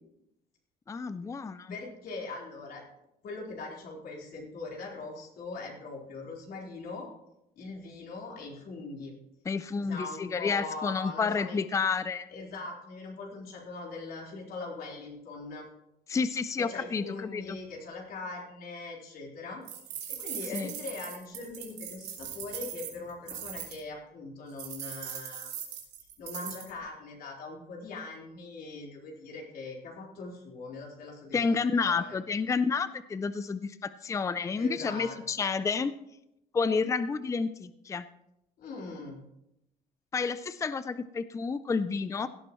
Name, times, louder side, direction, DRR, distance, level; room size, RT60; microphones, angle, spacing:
voice 1, 0.9-1.7 9.5-12.3 16.1-17.6 20.5-20.7 31.3-35.9 36.5-38.1 40.1-42.3, left 5 dB, 20° left, 14 dB, 0.4 m, -30 dB
voice 2, 1.7-2.8 3.2-7.1 7.6-9.1 9.8-11.6 12.3-15.7 16.6-19.6 20.1-25.5 26.2-31.4 31.7-32.2 34.5-35.2 38.6-39.2, left 3 dB, 60° left, -2 dB, 4.2 m, -41 dB
sound 1, 19.7-23.8 24.6-26.7, right 9 dB, 80° right, 3.2 m, -40 dB
17.0 x 12.0 x 3.1 m, 0.84 s
cardioid pair, 110°, 17 cm